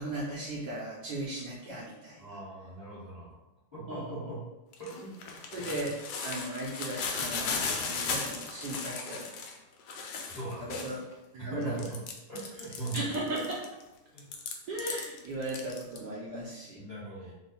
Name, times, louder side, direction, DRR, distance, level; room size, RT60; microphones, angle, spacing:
voice 1, 0.0-2.3 3.9-4.2 5.5-9.3 10.6-11.0 11.3-11.8 12.9-13.7 14.7-16.8, right 1 dB, 70° right, -5 dB, 1.1 m, -37 dB
voice 2, 2.2-3.4 3.7-4.4 4.8-5.7 10.3-10.8 11.4-12.0 12.3-13.1 14.1-14.3 16.8-17.3, right 2 dB, 25° left, -10 dB, 1.0 m, -40 dB
sound 1, 4.7-11.1 11.6-13.8 14.2-16.0, left 5 dB, 75° left, 1.2 m, -36 dB
3.1 x 2.1 x 4.2 m, 1.0 s
omnidirectional pair, 2.1 m